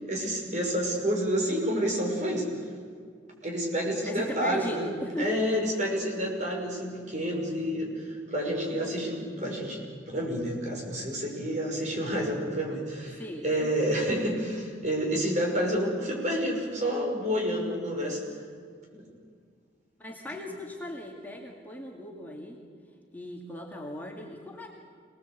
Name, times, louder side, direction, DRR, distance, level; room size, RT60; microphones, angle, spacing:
voice 1, 0.0-2.5 3.4-4.9 5.2-9.8 10.1-18.2, equal, 40° right, 0 dB, 6.0 m, -29 dB
voice 2, 4.1-5.5 13.1-13.7 20.0-22.6 23.1-24.7, equal, 10° left, -1 dB, 2.3 m, -38 dB
27.0 x 19.5 x 8.3 m, 2.1 s
head